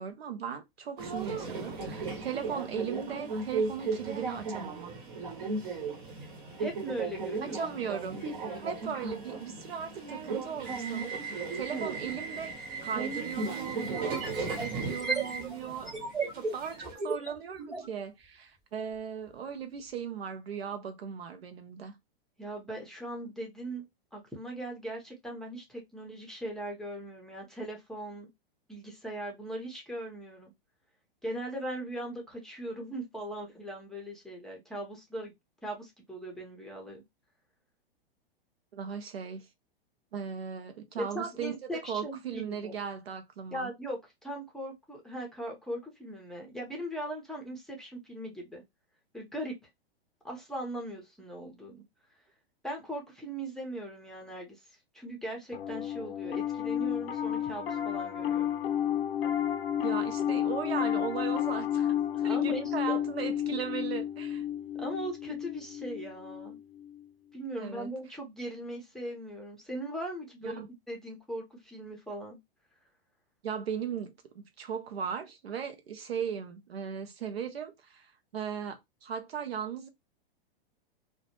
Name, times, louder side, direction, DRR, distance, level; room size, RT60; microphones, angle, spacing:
voice 1, 0.0-4.9 7.4-12.5 12.8-15.9 16.3-21.9 38.7-39.5 40.1-43.7 59.8-64.5 67.6-67.9 70.4-70.7 73.4-79.9, right 7 dB, 90° right, 0.7 m, -37 dB
Subway metro underground, 1.0-16.9, right 4 dB, 55° right, 1.0 m, -36 dB
voice 2, 6.6-7.6 22.4-23.8 24.1-28.3 28.7-30.5 31.2-35.3 35.6-37.0 41.0-42.7 43.5-48.6 49.1-49.5 50.2-51.8 52.6-54.6 54.9-58.5 62.1-62.6 62.9-63.0 64.7-66.6 67.3-70.6 70.9-72.4, right 1 dB, ahead, 0.6 m, -39 dB
sound 1, 12.5-12.6 13.9-17.9, right 4 dB, 15° right, 1.1 m, -35 dB
Piano, 55.5-67.0, left 10 dB, 75° left, 0.5 m, -31 dB
2.2 x 2.0 x 2.8 m
hypercardioid pair, 120°, 30 cm